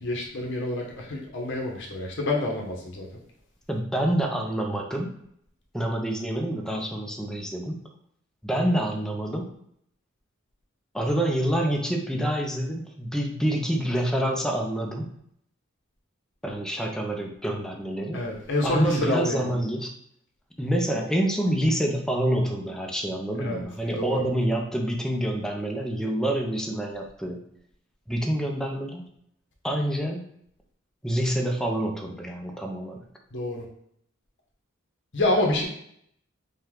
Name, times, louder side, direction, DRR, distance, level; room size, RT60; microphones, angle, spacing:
voice 1, 0.0-3.1 18.1-19.6 23.4-23.6 24.0-24.2 33.3-33.7 35.1-35.7, left 2 dB, 60° left, -1 dB, 1.2 m, -27 dB
voice 2, 3.7-5.1 5.7-7.8 8.4-9.5 10.9-15.1 16.4-18.2 18.6-19.9 20.6-27.4 28.1-29.0 29.6-30.2 31.0-33.0, right 1 dB, 5° left, 1 dB, 0.6 m, -27 dB
5.5 x 2.4 x 3.7 m, 0.70 s
head